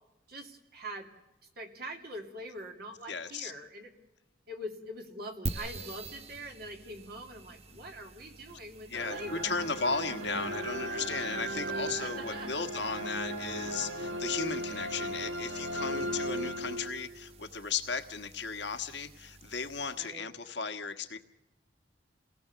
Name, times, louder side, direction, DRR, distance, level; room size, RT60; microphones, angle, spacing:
voice 1, 0.3-1.1 1.6-3.9 4.5-9.6 12.0-12.7 15.7-16.3 19.9-20.3, equal, 50° right, 3 dB, 2.7 m, -44 dB
voice 2, 3.1-3.5 8.5-8.6 8.9-21.2, left 5 dB, 60° left, 8 dB, 1.5 m, -36 dB
sound 1, 5.5-20.2, right 3 dB, 35° right, 0.9 m, -47 dB
sound 2, 8.9-17.3, right 1 dB, 80° right, 1.6 m, -36 dB
29.0 x 18.5 x 6.9 m, 0.97 s
head